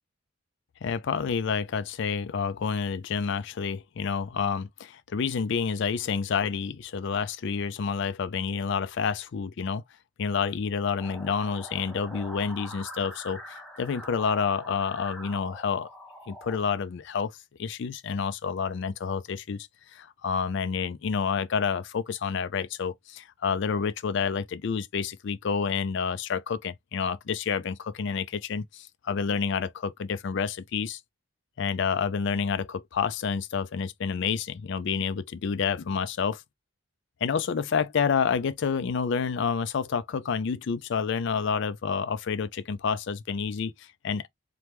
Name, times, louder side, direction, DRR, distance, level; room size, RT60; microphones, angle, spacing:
voice 1, 0.8-9.8 10.2-15.9 16.3-17.3 17.6-31.0 31.6-36.4 37.2-44.3, left 6 dB, 55° left, 0.4 m, -29 dB
sound 1, 11.0-16.6, equal, ahead, 0.5 m, -44 dB
3.4 x 2.2 x 2.9 m
head